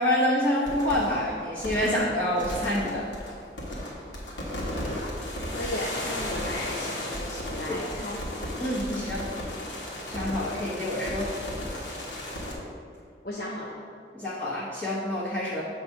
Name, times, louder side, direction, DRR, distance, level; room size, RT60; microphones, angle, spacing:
voice 1, 0.0-3.1 7.7-7.8 8.6-9.2 10.1-11.3 14.1-15.6, left 1 dB, 10° left, -12 dB, 1.0 m, -27 dB
sound 1, 0.7-12.5, left 1 dB, 80° left, 1.3 m, -35 dB
voice 2, 5.5-8.2 8.9-9.4 13.2-13.8, left 1 dB, 55° left, -5 dB, 0.7 m, -35 dB
7.6 x 2.7 x 5.7 m, 2.3 s
head